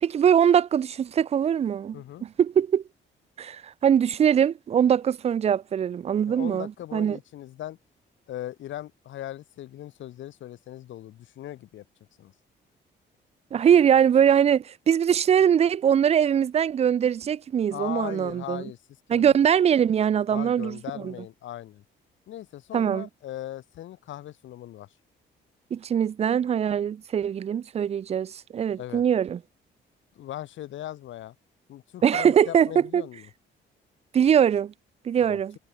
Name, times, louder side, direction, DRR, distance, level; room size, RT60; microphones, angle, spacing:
voice 1, 0.0-2.8 3.4-7.2 13.5-18.7 19.1-20.8 21.0-21.1 22.7-23.1 25.7-29.4 32.0-33.0 34.1-34.7 35.1-35.6, right 8 dB, 30° right, 0.3 m, -22 dB
voice 2, 1.9-2.3 6.3-7.8 8.3-11.8 12.2-12.3 17.7-18.8 19.1-19.3 20.3-21.8 22.3-24.9 28.8-29.0 30.2-31.3 31.7-33.3 35.2-35.4, left 13 dB, 75° left, 1.1 m, -38 dB
cardioid pair, 90°, 20 cm